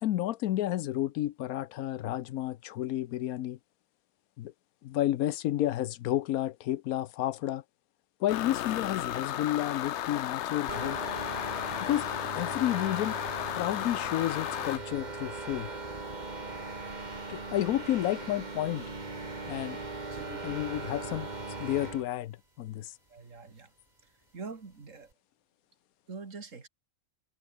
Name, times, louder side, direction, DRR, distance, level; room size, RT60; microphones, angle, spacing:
voice 1, 0.0-3.6 4.4-4.5 4.8-7.6 8.2-11.0 11.8-12.1 12.4-13.2 13.5-15.7 17.3-18.8 19.5-19.8 20.4-21.3 21.6-22.9, left 13 dB, 90° left, 1.1 m, -31 dB
sound 1, 8.3-14.8, left 12 dB, 65° left, 0.8 m, -34 dB
sound 2, 10.7-22.1, right 3 dB, 30° right, 2.3 m, -39 dB
voice 2, 20.1-20.6 23.1-23.7 24.3-25.1 26.1-26.7, right 4 dB, 60° right, 2.7 m, -44 dB
omnidirectional pair, 1.5 m